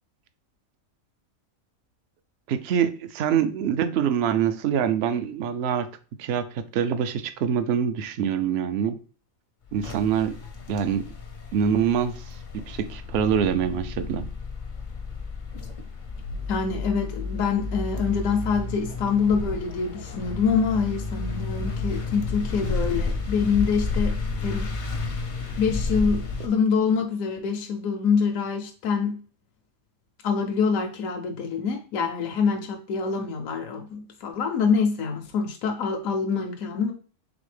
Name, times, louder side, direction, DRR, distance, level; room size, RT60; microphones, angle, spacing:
voice 1, 2.5-5.9 6.2-9.0 9.7-10.4 10.7-11.1 11.5-12.4 12.7-14.3, right 8 dB, 65° right, 0.6 m, -25 dB
sound 1, 9.7-26.5, left 3 dB, 45° left, 0.6 m, -32 dB
voice 2, 16.5-24.7 25.6-29.2 30.2-36.9, left 5 dB, 75° left, 1.0 m, -25 dB
4.1 x 3.4 x 3.2 m
omnidirectional pair, 1.5 m